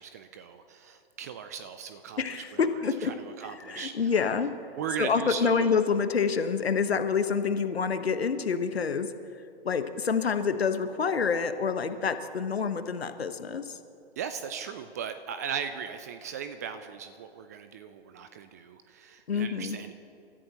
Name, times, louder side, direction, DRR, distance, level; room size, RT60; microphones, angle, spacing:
voice 1, 0.0-4.1 4.7-5.7 14.2-19.9, right 7 dB, 15° right, 9 dB, 0.3 m, -38 dB
voice 2, 2.2-3.1 3.7-4.5 5.0-9.1 9.6-13.8 19.3-19.8, left 6 dB, 75° left, 9 dB, 1.3 m, -27 dB
30.0 x 13.5 x 3.0 m, 2.6 s
figure-of-eight pair, 120°, 31 cm